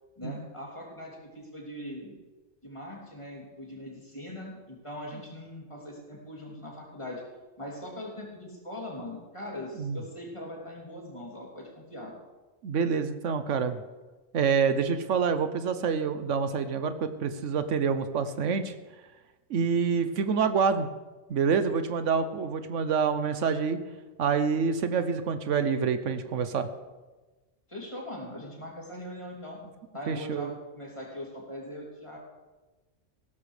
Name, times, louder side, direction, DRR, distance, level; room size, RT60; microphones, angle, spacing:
voice 1, 0.2-2.1 2.6-7.2 7.6-12.1 27.7-29.6 29.9-32.2, left 1 dB, 25° left, -3 dB, 3.0 m, -41 dB
voice 2, 12.6-13.8 14.3-18.7 19.5-20.9 21.3-23.8 24.2-26.7 30.1-30.5, right 6 dB, 80° right, 10 dB, 1.1 m, -27 dB
17.0 x 12.5 x 3.3 m, 1.2 s
omnidirectional pair, 1.3 m